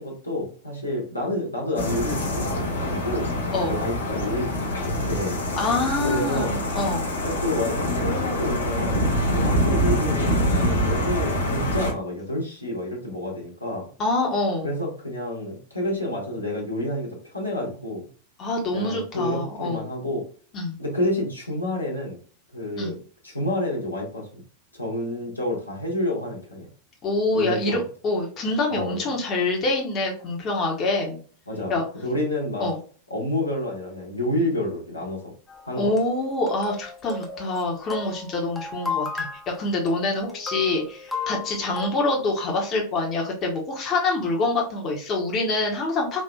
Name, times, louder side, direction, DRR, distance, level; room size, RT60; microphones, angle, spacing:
voice 1, 0.0-3.3 3.7-5.4 6.0-6.6 7.2-9.0 9.3-13.9 14.6-18.0 18.7-20.2 20.8-22.2 22.5-23.0 23.2-24.4 24.7-26.7 27.3-27.8 28.7-29.0 31.5-31.7 32.0-32.7 33.1-35.2 35.6-35.9, left 1 dB, 85° left, -3 dB, 1.2 m, -29 dB
sound 1, 1.8-11.9, equal, 70° left, 0.9 m, -25 dB
voice 2, 5.6-7.0 14.0-14.7 18.4-19.8 20.5-20.8 22.8-22.9 27.0-31.2 31.7-31.8 32.6-32.8 35.8-46.2, left 2 dB, 30° left, -1 dB, 1.0 m, -26 dB
sound 2, 35.5-41.9, left 4 dB, 5° left, 0.8 m, -34 dB
4.2 x 2.8 x 2.3 m, 0.41 s
figure-of-eight pair, 90°, 0 cm